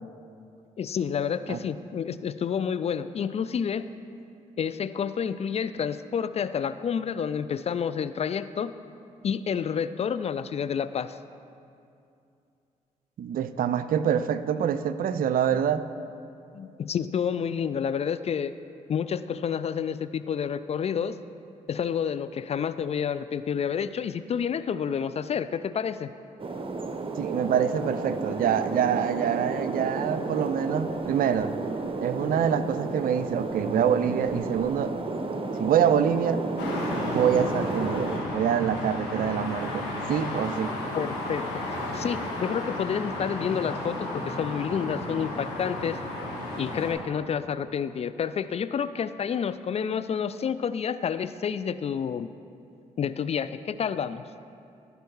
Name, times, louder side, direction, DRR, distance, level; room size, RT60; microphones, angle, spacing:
voice 1, 0.8-3.9 4.6-8.7 9.2-11.2 16.5-18.5 18.9-21.2 21.7-26.1 40.9-41.6 41.9-46.0 46.6-52.3 53.0-54.2, left 7 dB, 35° left, 13 dB, 0.4 m, -29 dB
voice 2, 13.2-15.8 27.2-31.5 32.0-34.9 35.6-36.4 37.1-40.7, right 8 dB, 55° right, 13 dB, 0.5 m, -25 dB
sound 1, 26.4-38.2, right 3 dB, 30° right, 0.9 m, -32 dB
sound 2, 36.6-46.9, left 1 dB, 70° left, 1.9 m, -33 dB
14.5 x 5.4 x 4.6 m, 2.5 s
figure-of-eight pair, 40°, 18 cm